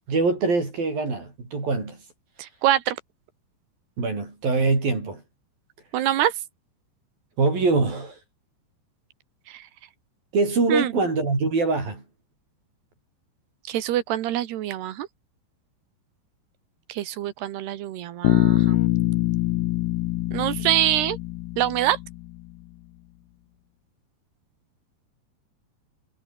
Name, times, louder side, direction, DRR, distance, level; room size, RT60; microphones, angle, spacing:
voice 1, 0.1-2.0 4.0-5.2 7.4-8.2 10.3-12.0, right 3 dB, 55° right, 9.5 m, -23 dB
voice 2, 2.4-3.0 5.9-6.3 9.5-9.7 10.7-10.9 13.7-15.1 16.9-18.8 20.3-21.2 21.6-22.0, right 12 dB, 75° right, 3.5 m, -25 dB
Bass guitar, 18.2-22.3, left 16 dB, 75° left, 2.6 m, -24 dB
omnidirectional pair, 4.9 m